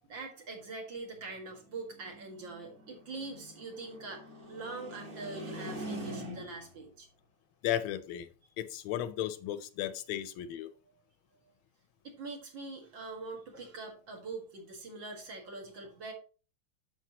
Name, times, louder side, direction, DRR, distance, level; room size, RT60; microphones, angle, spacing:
voice 1, 0.0-7.1 12.0-16.1, right 3 dB, 60° right, 2 dB, 2.5 m, -43 dB
sound 1, 1.3-6.7, right 1 dB, 35° right, 1.9 m, -44 dB
voice 2, 7.6-8.3 8.6-10.7, left 11 dB, 75° left, 13 dB, 1.4 m, -35 dB
9.1 x 6.9 x 2.9 m, 0.35 s
omnidirectional pair, 2.3 m